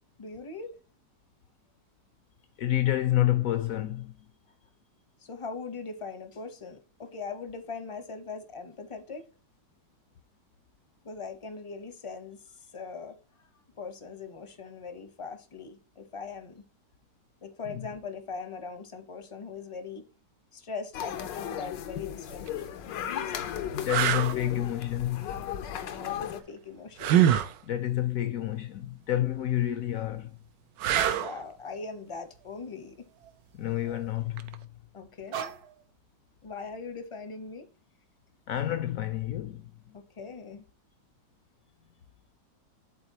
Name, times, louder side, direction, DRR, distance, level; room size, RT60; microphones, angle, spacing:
voice 1, 0.2-0.7 5.2-9.3 11.0-12.4 12.7-13.2 13.8-16.6 17.4-20.0 20.5-22.7 23.3-24.4 26.0-27.1 31.1-33.0 34.9-35.6 36.4-37.7 39.9-40.6, left 4 dB, 30° left, 0.5 m, -40 dB
voice 2, 2.6-4.1 17.7-17.8 23.7-25.3 27.6-30.3 33.5-34.7 38.5-39.7, left 13 dB, 70° left, 0.8 m, -29 dB
sound 1, 20.9-26.4, left 10 dB, 85° left, 1.4 m, -36 dB
sound 2, 22.3-22.5 23.2-23.3 23.9-24.4 27.0-27.5 30.8-31.4 34.4-34.5, right 10 dB, 85° right, 1.3 m, -24 dB
sound 3, 30.9-31.3 31.8-32.0 32.3-33.4 33.7-34.1 35.3-35.8, right 8 dB, 65° right, 1.3 m, -39 dB
11.5 x 4.1 x 2.8 m
omnidirectional pair, 1.9 m